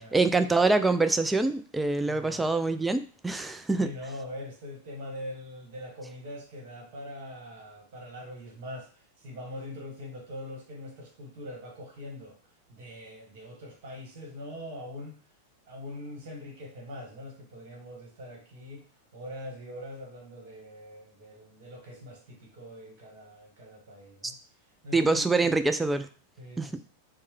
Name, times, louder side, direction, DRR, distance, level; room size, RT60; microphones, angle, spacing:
voice 1, 0.0-3.9 24.9-26.1 26.6-26.8, right 3 dB, 10° right, 9 dB, 0.3 m, -25 dB
voice 2, 2.0-2.4 3.7-12.4 12.7-15.2 15.7-18.8 19.1-24.3 24.8-25.3 26.4-26.8, left 1 dB, 50° right, 1 dB, 1.3 m, -42 dB
4.4 x 2.1 x 3.1 m, 0.40 s
figure-of-eight pair, 90°, 0 cm